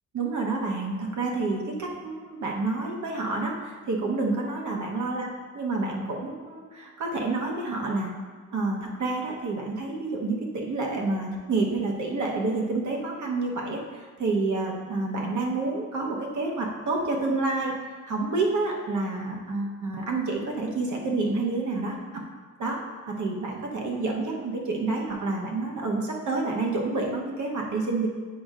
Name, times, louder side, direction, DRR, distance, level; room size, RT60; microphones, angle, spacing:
voice 1, 0.1-5.3 5.5-8.1 8.5-13.8 14.2-17.7 18.1-22.2 22.6-22.8 23.1-28.1, right 3 dB, 70° right, -1 dB, 1.0 m, -28 dB
8.4 x 5.3 x 2.4 m, 1.5 s
wide cardioid pair, 150°, 31 cm